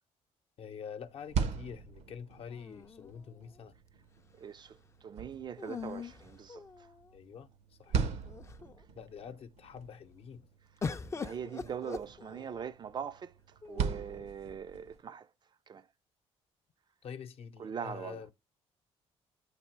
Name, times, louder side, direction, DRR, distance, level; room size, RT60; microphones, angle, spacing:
voice 1, 0.6-3.7 7.1-7.5 7.8-8.2 8.9-10.5 17.0-18.3, left 7 dB, 60° left, 0.7 m, -46 dB
sound 1, 1.0-15.0, right 6 dB, 75° right, 0.7 m, -40 dB
sound 2, 2.5-3.6 5.6-7.1 7.9-8.0 8.3-8.8 10.8-12.7 13.6-14.3, left 5 dB, 25° left, 0.4 m, -42 dB
voice 2, 4.3-6.7 11.1-13.3 13.7-15.3 15.7-15.8 17.6-18.2, right 7 dB, 40° right, 0.4 m, -41 dB
8.0 x 2.9 x 4.5 m
cardioid pair, 100°, 11 cm